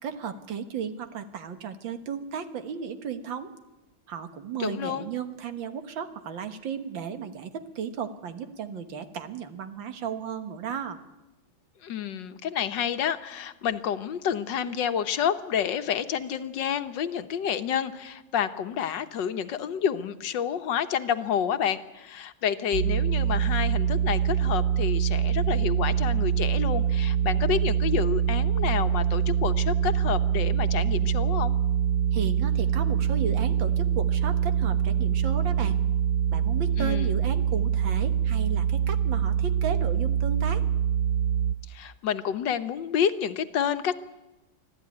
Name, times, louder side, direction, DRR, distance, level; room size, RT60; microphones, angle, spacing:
voice 1, 0.0-3.5 4.1-11.0 32.1-35.8 36.3-40.6, right 7 dB, 70° right, 9 dB, 2.1 m, -34 dB
voice 2, 4.6-5.1 11.8-31.6 36.8-37.1 41.7-44.0, left 8 dB, 70° left, 9 dB, 1.5 m, -29 dB
sound 1, 22.7-41.6, right 9 dB, 55° right, 1.2 m, -24 dB
25.0 x 15.0 x 9.7 m, 1.1 s
omnidirectional pair, 2.2 m